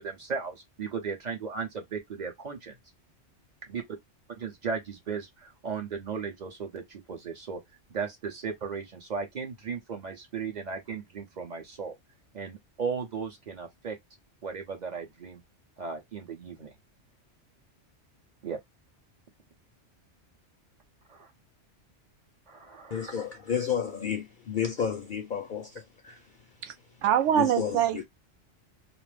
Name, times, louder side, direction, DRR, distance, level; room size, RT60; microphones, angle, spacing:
voice 1, 0.0-2.7 3.7-3.8 4.4-7.6 7.9-12.0 12.3-14.0 14.4-15.4 15.8-16.7 18.4-18.6 21.1-21.3 22.5-23.0, right 5 dB, 45° right, 0.8 m, -36 dB
voice 2, 22.9-26.2 27.3-28.0, left 8 dB, 60° left, 0.6 m, -32 dB
voice 3, 27.0-28.0, right 10 dB, 80° right, 0.9 m, -24 dB
2.5 x 2.0 x 3.1 m
omnidirectional pair, 1.2 m